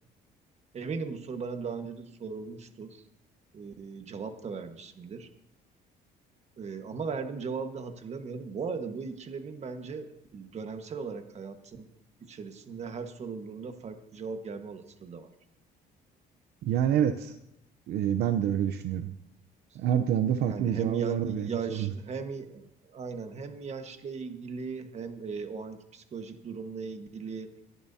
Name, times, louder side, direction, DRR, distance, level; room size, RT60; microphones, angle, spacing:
voice 1, 0.7-3.0 3.5-5.3 6.6-11.9 12.2-15.3 20.5-27.5, right 5 dB, 40° right, 7 dB, 1.5 m, -38 dB
voice 2, 16.6-17.4 17.9-19.1 19.7-21.9, right 9 dB, 75° right, 9 dB, 0.7 m, -27 dB
25.0 x 10.5 x 2.8 m, 0.81 s
cardioid pair, 110°, 17 cm